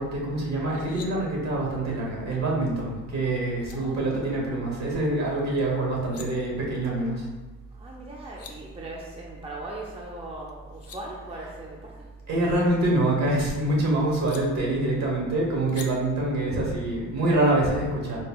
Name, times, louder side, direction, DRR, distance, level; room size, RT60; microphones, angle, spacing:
voice 1, 0.0-7.2 12.3-18.2, right 1 dB, 60° right, -3 dB, 1.3 m, -25 dB
sound 1, 0.6-1.1 3.2-3.3 3.6-3.8 5.8-6.3 7.9-8.0 8.2-8.5 10.5-11.0 12.5-13.5 14.3-14.4 15.7-15.9, left 6 dB, 50° left, 0.5 m, -45 dB
voice 2, 3.7-4.2 7.7-12.1, right 2 dB, 20° right, -3 dB, 0.6 m, -40 dB
4.1 x 2.1 x 3.6 m, 1.2 s
cardioid pair, 90°, 30 cm